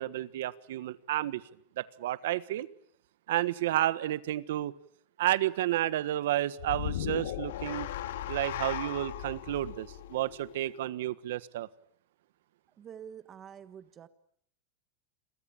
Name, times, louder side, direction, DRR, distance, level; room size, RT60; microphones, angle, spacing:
voice 1, 0.0-1.4 1.8-2.7 3.3-4.7 5.2-7.9 8.3-11.7, right 14 dB, 75° right, 16 dB, 1.4 m, -31 dB
sound 1, 6.6-10.9, left 12 dB, 80° left, 2.6 m, -37 dB
voice 2, 12.8-14.1, right 8 dB, 20° right, 13 dB, 1.5 m, -47 dB
29.5 x 23.0 x 8.8 m, 0.67 s
supercardioid pair, 170°, 0 cm